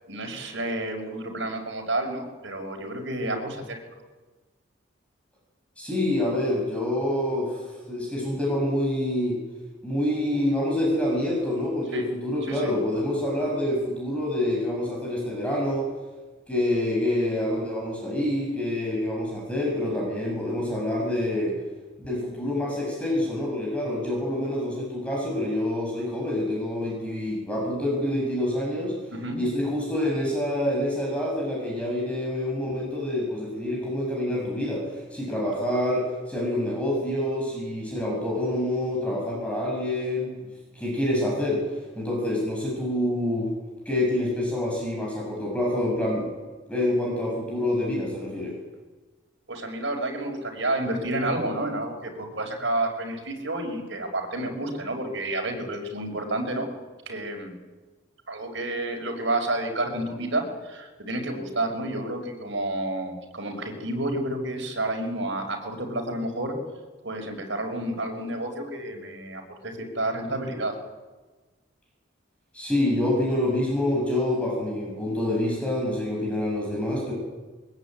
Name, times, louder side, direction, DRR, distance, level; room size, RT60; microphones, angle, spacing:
voice 1, 0.1-3.8 11.9-12.1 12.5-12.7 29.1-29.4 49.5-56.7 57.1-57.5 58.3-66.5 67.0-70.7, right 1 dB, 65° right, 2 dB, 5.8 m, -30 dB
voice 2, 5.8-9.4 9.8-15.9 16.5-21.6 22.0-29.0 29.4-40.3 40.7-43.5 43.9-46.3 46.7-48.6 72.5-77.1, left 1 dB, 5° left, -2 dB, 7.0 m, -27 dB
22.5 x 21.5 x 9.2 m, 1.3 s
head